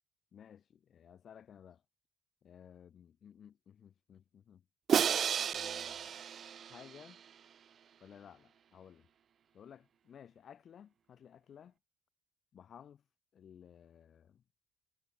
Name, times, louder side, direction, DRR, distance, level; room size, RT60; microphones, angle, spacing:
voice 1, 0.3-1.8 2.4-4.6 5.4-6.2 6.7-7.2 8.0-9.1 9.5-11.7 12.5-13.0 13.3-14.4, left 8 dB, 45° left, 5.6 m, -56 dB
Crash cymbal, 4.9-7.1, right 8 dB, 40° right, 0.9 m, -32 dB
cardioid pair, 165°, 0 cm